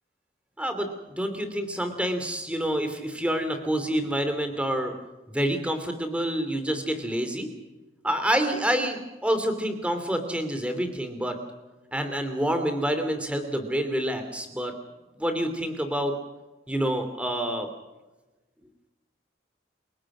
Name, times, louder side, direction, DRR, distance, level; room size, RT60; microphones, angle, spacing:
voice 1, 0.6-4.9 5.3-7.5 8.0-11.4 11.9-14.7 15.2-16.1 16.7-17.7, equal, 5° right, 7 dB, 2.9 m, -27 dB
29.5 x 18.0 x 6.2 m, 1.1 s
head